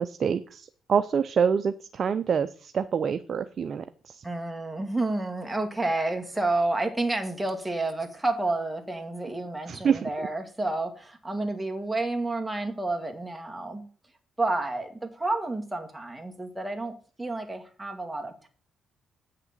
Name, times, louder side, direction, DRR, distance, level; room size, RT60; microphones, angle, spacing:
voice 1, 0.0-4.2 9.7-10.0, right 7 dB, 50° right, 11 dB, 0.6 m, -26 dB
voice 2, 4.2-13.8 14.4-18.5, right 2 dB, 10° right, 3 dB, 2.1 m, -30 dB
8.3 x 6.7 x 7.3 m, 0.41 s
cardioid pair, 90°, 0 cm